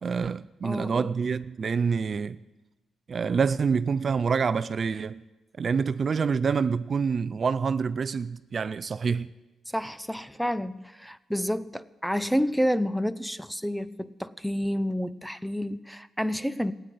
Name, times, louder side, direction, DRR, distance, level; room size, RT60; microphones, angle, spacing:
voice 1, 0.0-2.4 3.1-5.2 5.6-9.3, right 5 dB, 50° right, 0.4 m, -27 dB
voice 2, 0.6-1.1 9.7-16.7, equal, ahead, 0.7 m, -29 dB
16.0 x 9.2 x 9.4 m
cardioid pair, 70°, 0 cm